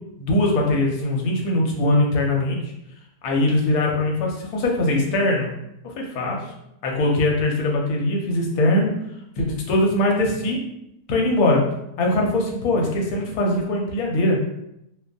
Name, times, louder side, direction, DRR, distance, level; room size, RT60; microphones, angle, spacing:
voice 1, 0.2-2.7 3.2-5.5 5.8-6.4 6.8-8.9 9.4-10.6 11.1-11.6 12.0-14.4, left 1 dB, 70° left, -1 dB, 1.0 m, -21 dB
2.7 x 2.4 x 2.2 m, 0.82 s
omnidirectional pair, 1.7 m